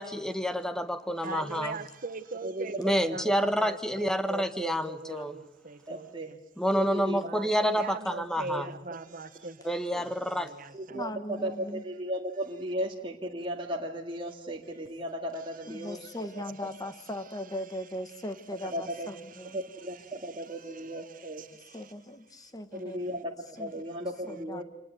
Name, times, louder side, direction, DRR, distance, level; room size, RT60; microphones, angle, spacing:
voice 1, 0.0-1.8 2.8-5.3 6.6-8.7 9.6-10.5, equal, 5° left, 10 dB, 1.4 m, -28 dB
voice 2, 1.2-6.3 7.2-9.5 10.3-11.0 16.6-16.8 18.6-19.0, right 3 dB, 45° right, 10 dB, 1.3 m, -40 dB
voice 3, 2.4-3.2 5.9-6.3 6.8-7.2 8.5-8.7 9.9-10.1 10.7-16.1 18.7-19.1 19.5-21.5 22.7-24.6, equal, 25° right, 0 dB, 2.2 m, -36 dB
voice 4, 10.9-11.8 15.7-19.6 21.7-23.1 23.6-23.7 24.3-24.6, left 1 dB, 20° left, 10 dB, 1.5 m, -39 dB
26.5 x 19.5 x 9.1 m, 0.82 s
head